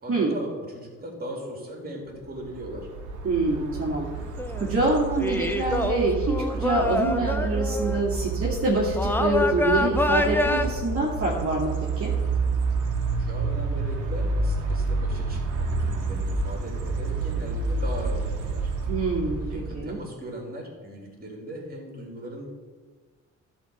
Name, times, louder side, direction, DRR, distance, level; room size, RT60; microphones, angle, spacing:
voice 1, 0.0-2.9 13.1-18.7 19.4-22.5, equal, 30° right, 0 dB, 3.5 m, -38 dB
sound 1, 2.4-20.0, right 3 dB, 75° right, 1.6 m, -29 dB
voice 2, 3.2-4.1 4.6-12.1 18.9-19.4 19.7-20.0, right 2 dB, 50° right, -5 dB, 2.2 m, -25 dB
sound 2, 4.3-4.7 5.2-8.0 9.0-10.7, left 1 dB, 5° left, 0.7 m, -26 dB
11.5 x 4.6 x 7.2 m, 1.5 s
cardioid pair, 90°, 30 cm